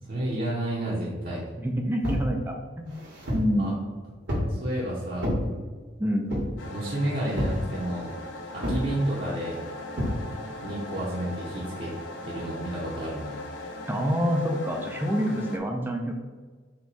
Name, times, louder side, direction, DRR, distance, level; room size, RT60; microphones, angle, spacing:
voice 1, 0.0-1.4 3.6-3.7 4.5-5.3 6.7-8.2 8.5-9.6 10.6-13.4, right 1 dB, 50° right, -7 dB, 0.8 m, -31 dB
voice 2, 1.6-3.0 3.3-3.8 6.0-6.3 13.9-16.1, equal, 10° right, 2 dB, 0.3 m, -27 dB
sound 1, 2.0-2.3 2.9-3.5 4.3-4.6 5.2-5.5 6.3-6.6 7.4-7.6 8.6-8.9 10.0-10.2, equal, 80° right, 1.4 m, -28 dB
sound 2, 6.6-15.6, left 2 dB, 80° left, 0.5 m, -39 dB
4.4 x 2.2 x 4.1 m, 1.4 s
head